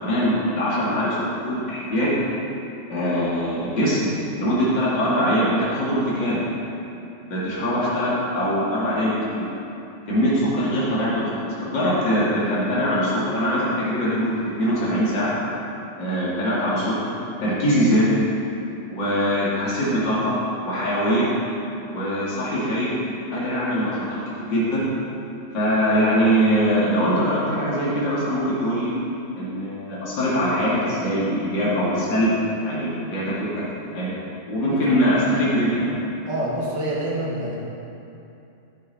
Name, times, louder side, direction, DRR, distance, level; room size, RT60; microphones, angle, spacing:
voice 1, 0.0-2.2 2.9-4.1 4.4-6.4 7.2-9.5 10.1-15.3 16.0-17.1 17.4-18.1 18.9-20.3 20.6-21.3 21.9-22.9 23.3-24.9 25.5-28.9 29.4-32.3 32.6-33.5 33.8-34.1 34.5-36.0, equal, 75° left, -9 dB, 3.0 m, -22 dB
voice 2, 36.3-37.6, right 1 dB, 70° right, -4 dB, 2.3 m, -26 dB
14.0 x 6.7 x 4.2 m, 2.8 s
omnidirectional pair, 2.0 m